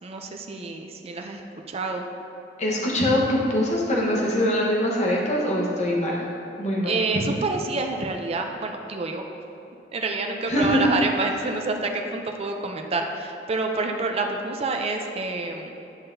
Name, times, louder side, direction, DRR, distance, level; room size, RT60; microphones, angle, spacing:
voice 1, 0.0-2.0 6.8-9.3 9.9-15.7, right 3 dB, 35° right, 3 dB, 0.5 m, -28 dB
voice 2, 2.6-6.2 6.6-7.0 10.5-10.8, left 1 dB, 40° left, -4 dB, 1.1 m, -23 dB
9.7 x 5.6 x 2.7 m, 2.8 s
head